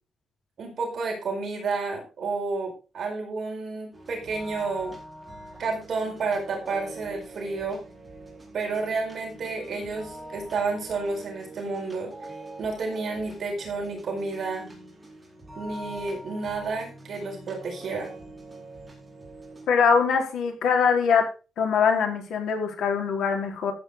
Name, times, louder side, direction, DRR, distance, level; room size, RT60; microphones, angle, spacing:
voice 1, 0.6-5.0 5.6-7.8 8.5-14.7 15.6-18.1, right 4 dB, 50° right, 1 dB, 4.8 m, -31 dB
sound 1, 3.9-19.7, right 1 dB, 10° right, 4.4 m, -43 dB
voice 2, 19.7-21.3 21.6-23.7, left 6 dB, 85° left, 3 dB, 4.1 m, -22 dB
14.0 x 8.6 x 3.8 m, 0.32 s
wide cardioid pair, 160°, 0 cm